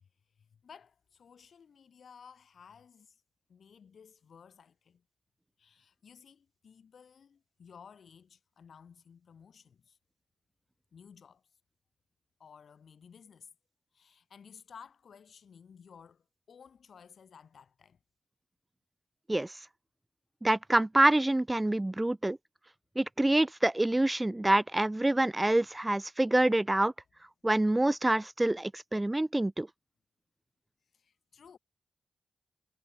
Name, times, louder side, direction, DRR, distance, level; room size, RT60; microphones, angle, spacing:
voice 1, 0.4-3.2 3.5-5.0 5.6-10.0 10.9-11.4 12.4-13.5 13.9-18.0 30.9-31.6, left 6 dB, 70° left, 5.4 m, -55 dB
voice 2, 20.4-22.4 23.0-26.9 27.4-29.7, right 1 dB, 20° right, 0.4 m, -26 dB
supercardioid pair, 45°, 0 cm